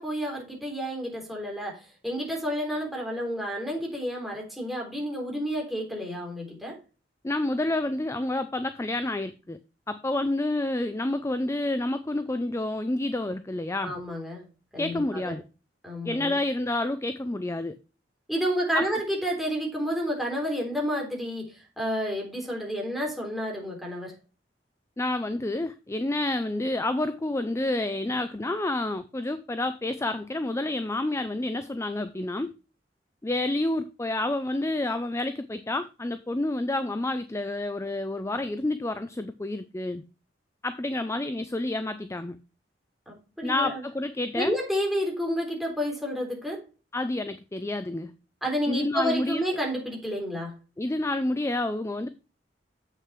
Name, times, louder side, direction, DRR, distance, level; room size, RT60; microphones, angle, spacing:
voice 1, 0.0-6.8 13.8-14.4 14.7-15.3 15.8-16.4 18.3-24.1 43.1-43.8 44.3-46.6 48.4-50.5, equal, ahead, 3.4 m, -30 dB
voice 2, 7.2-9.6 9.9-13.9 14.8-15.4 16.0-17.8 18.7-18.8 25.0-32.5 33.2-40.0 40.6-42.4 43.4-44.6 46.9-48.1 48.7-49.4 50.8-52.1, left 2 dB, 15° left, 0.5 m, -29 dB
7.8 x 6.5 x 4.7 m
head